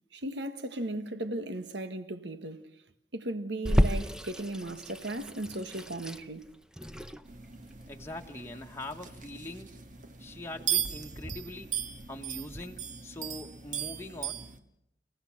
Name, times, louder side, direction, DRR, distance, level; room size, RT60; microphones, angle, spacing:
voice 1, 0.1-2.8 3.1-6.5, right 1 dB, 75° right, 1.6 m, -36 dB
Water tap faucet / Sink (filling or washing), 3.6-12.6, equal, 5° right, 0.7 m, -33 dB
sound 1, 7.3-14.6, right 9 dB, 45° right, 1.7 m, -38 dB
voice 2, 7.9-9.7 10.2-11.7 12.1-14.4, left 1 dB, 15° left, 1.5 m, -42 dB
30.0 x 17.0 x 5.9 m
head